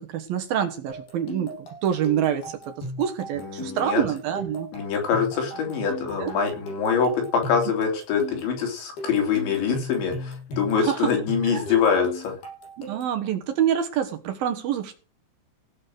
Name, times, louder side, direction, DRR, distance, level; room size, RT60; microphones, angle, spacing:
voice 1, 0.0-4.7 6.2-6.3 10.8-11.1 11.4-11.6 12.8-14.9, right 9 dB, 65° right, 6 dB, 2.6 m, -26 dB
sound 1, 0.9-13.2, equal, 60° left, 7.9 m, -38 dB
voice 2, 3.3-4.0 4.7-12.3, left 6 dB, 80° left, 2 dB, 5.7 m, -24 dB
16.0 x 7.4 x 6.4 m, 0.37 s
omnidirectional pair, 5.2 m